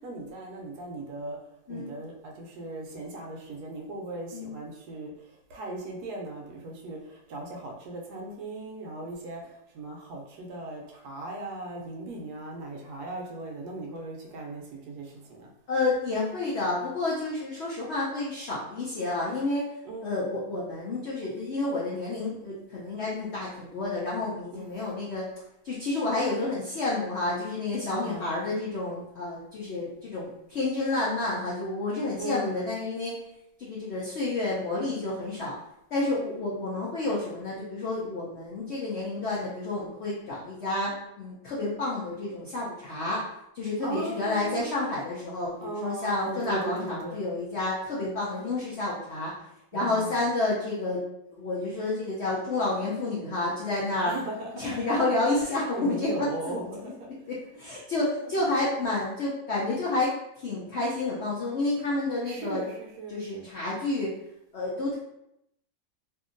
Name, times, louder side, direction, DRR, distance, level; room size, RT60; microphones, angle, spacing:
voice 1, 0.0-1.4 1.7-15.5 19.9-20.1 24.5-24.8 27.9-28.3 32.2-32.7 43.8-44.9 45.6-47.2 49.7-50.3 54.1-54.8 55.4-57.1 62.2-63.5, right 2 dB, 75° right, -1 dB, 1.1 m, -38 dB
voice 2, 15.7-19.7 20.0-25.2 25.6-33.1 33.6-35.5 35.9-43.2 43.5-49.3 49.7-51.0 51.3-54.1 54.5-56.3 57.3-62.6 63.1-64.1 64.5-64.9, left 2 dB, 80° left, -5 dB, 0.6 m, -30 dB
2.8 x 2.6 x 2.5 m, 0.81 s
omnidirectional pair, 1.9 m